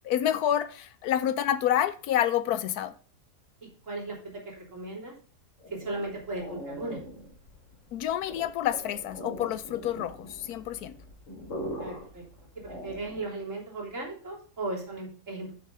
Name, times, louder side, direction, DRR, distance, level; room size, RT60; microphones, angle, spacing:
voice 1, 0.0-2.9 7.9-11.0, left 11 dB, 80° left, 1.1 m, -28 dB
voice 2, 3.6-4.2 4.5-5.1 5.7-7.0 11.8-12.2 12.6-15.5, right 2 dB, 50° right, 3.6 m, -36 dB
sound 1, 5.6-13.4, equal, 55° left, 3.1 m, -42 dB
7.4 x 6.6 x 5.4 m
omnidirectional pair, 1.7 m